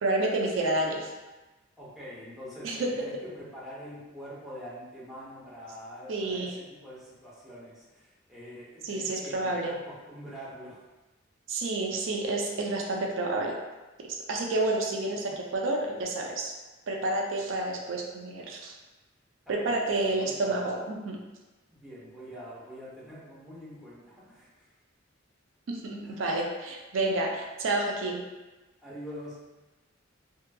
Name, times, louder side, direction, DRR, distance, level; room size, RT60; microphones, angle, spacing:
voice 1, 0.0-1.1 2.6-3.1 6.1-6.6 8.8-9.8 11.5-13.6 14.0-16.5 16.9-18.7 19.5-21.2 25.7-28.2, right 2 dB, 85° right, 0 dB, 0.4 m, -29 dB
voice 2, 1.8-10.8 19.5-19.6 19.8-20.8 21.7-24.7 26.0-26.2 28.8-29.4, equal, ahead, -9 dB, 0.7 m, -45 dB
2.6 x 2.5 x 2.2 m, 1.1 s
head